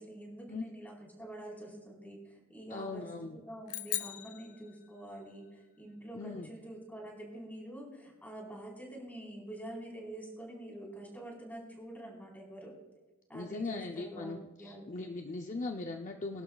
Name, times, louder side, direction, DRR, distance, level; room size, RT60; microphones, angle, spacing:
voice 1, 0.0-3.1 3.4-12.7 13.3-14.3 14.6-15.1, right 1 dB, 10° left, -2 dB, 4.2 m, -46 dB
voice 2, 2.7-3.4 6.1-6.5 13.3-16.4, left 3 dB, 35° left, 3 dB, 0.6 m, -39 dB
sound 1, 3.7-5.3, left 14 dB, 90° left, 0.8 m, -39 dB
23.0 x 12.0 x 2.4 m, 1.2 s
head